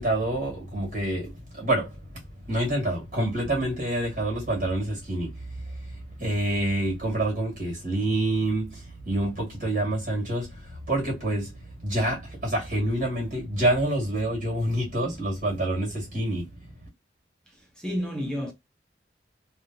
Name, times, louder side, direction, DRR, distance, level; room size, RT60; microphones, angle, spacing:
voice 1, 0.0-2.0 2.5-5.3 6.2-11.5 11.8-16.4, right 1 dB, 50° right, 1.9 m, -27 dB
voice 2, 17.5-18.5, equal, 5° left, 0.8 m, -31 dB
3.5 x 2.5 x 2.7 m
head